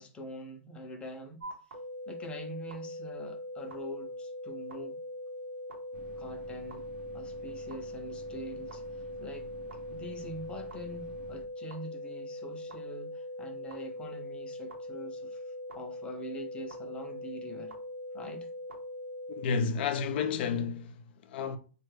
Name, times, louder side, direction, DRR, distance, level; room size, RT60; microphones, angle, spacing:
voice 1, 0.0-1.4 2.1-5.0 6.2-6.9 7.1-9.5 9.9-17.7 18.1-18.5, equal, 15° left, 0.6 m, -44 dB
sound 1, 1.4-19.4, left 1 dB, 85° right, 0.8 m, -41 dB
sound 2, 5.9-11.5, right 5 dB, 55° right, 0.6 m, -52 dB
voice 2, 19.3-21.6, left 6 dB, 60° left, 0.5 m, -31 dB
3.1 x 2.3 x 3.2 m
hypercardioid pair, 135°, 7 cm